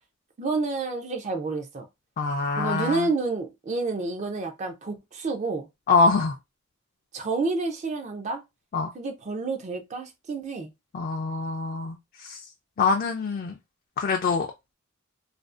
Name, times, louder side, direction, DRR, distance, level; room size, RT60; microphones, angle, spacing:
voice 1, 0.4-1.9 2.6-5.7 7.1-8.4 8.9-10.7, right 3 dB, 35° right, 0.4 m, -29 dB
voice 2, 2.2-3.1 5.9-6.4 8.7-8.9 10.9-12.4 12.8-13.6 14.0-14.5, left 4 dB, 45° left, 0.3 m, -24 dB
2.5 x 2.3 x 2.4 m
head